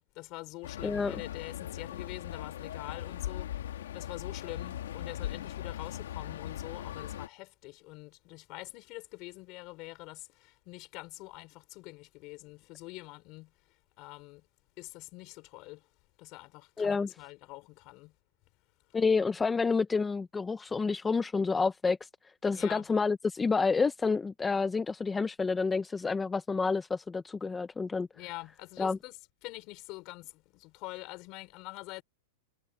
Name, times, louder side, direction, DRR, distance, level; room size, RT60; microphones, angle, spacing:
voice 1, 0.0-13.5 14.0-14.4 14.8-15.9 16.2-18.1 22.5-22.9 28.1-29.2 29.4-32.0, left 23 dB, 40° left, 4.9 m, -45 dB
sound 1, 0.6-7.3, left 11 dB, 80° left, 1.6 m, -39 dB
voice 2, 16.8-17.1 18.9-22.1 22.4-28.1 28.8-29.0, left 4 dB, 10° left, 0.6 m, -29 dB
supercardioid pair, 155°, 0 cm